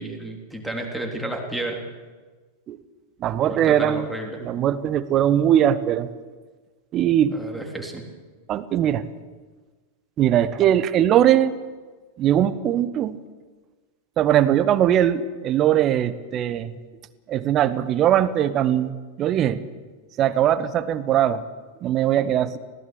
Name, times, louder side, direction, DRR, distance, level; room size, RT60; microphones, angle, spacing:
voice 1, 0.0-1.8 3.4-4.4 7.3-8.0, right 1 dB, ahead, 1 dB, 3.6 m, -31 dB
voice 2, 3.2-4.1 4.4-6.1 6.9-7.4 8.5-9.0 10.2-11.6 12.2-13.2 14.2-16.7 17.3-19.6 20.2-21.4 21.8-22.6, right 11 dB, 30° right, 14 dB, 1.1 m, -20 dB
19.5 x 16.5 x 8.5 m, 1.3 s
figure-of-eight pair, 90°, 0 cm